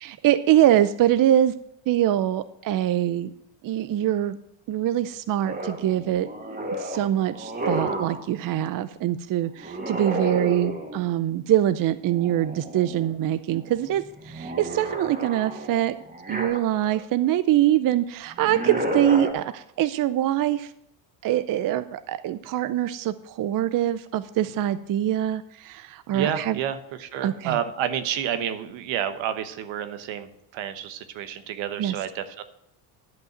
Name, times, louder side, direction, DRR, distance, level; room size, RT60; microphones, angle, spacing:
voice 1, 0.0-1.5 1.9-3.3 3.6-4.4 4.7-6.3 6.8-15.9 16.3-20.7 21.2-26.6 27.2-27.6 31.8-32.0, right 12 dB, 45° right, 13 dB, 0.6 m, -24 dB
sound 1, 5.5-8.3 9.6-11.2 12.1-13.1 13.5-17.0 18.3-19.3, right 1 dB, 20° right, 2.0 m, -32 dB
voice 2, 26.1-32.4, right 9 dB, 75° right, 10 dB, 1.2 m, -30 dB
11.5 x 5.4 x 7.3 m, 0.77 s
cardioid pair, 100°, 46 cm